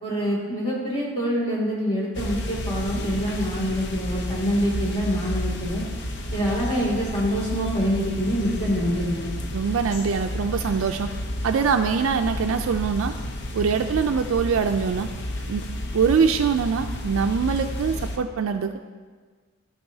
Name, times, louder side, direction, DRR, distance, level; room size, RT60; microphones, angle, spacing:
voice 1, 0.0-5.8 6.3-9.3, equal, 30° left, -5 dB, 2.5 m, -25 dB
sound 1, 2.1-18.2, left 1 dB, 55° left, 0.7 m, -31 dB
voice 2, 9.5-11.1 11.4-13.1 13.5-15.1 15.5-15.6 15.9-18.8, right 6 dB, 75° right, 6 dB, 0.4 m, -23 dB
14.0 x 5.3 x 2.7 m, 1.5 s
head